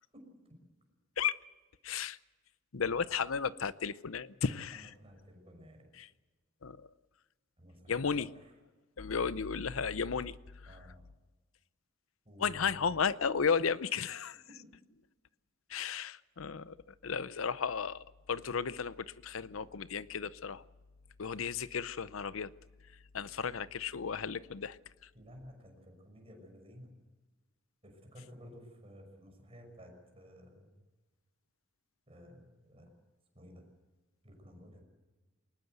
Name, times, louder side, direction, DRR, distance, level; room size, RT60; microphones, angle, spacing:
voice 1, 1.8-2.2 2.7-4.9 6.0-6.1 6.6-6.9 7.9-8.3 9.0-10.4 10.6-10.8 12.4-14.4 15.7-20.6 21.2-22.5 23.1-25.1, left 6 dB, 85° left, 0.7 m, -34 dB
voice 2, 4.4-5.9 7.6-8.2 10.7-11.0 12.2-12.8 25.1-27.0 27.8-30.8 32.1-32.9 33.3-33.6 34.2-34.8, equal, 30° right, 5.9 m, -54 dB
22.0 x 19.5 x 8.0 m
head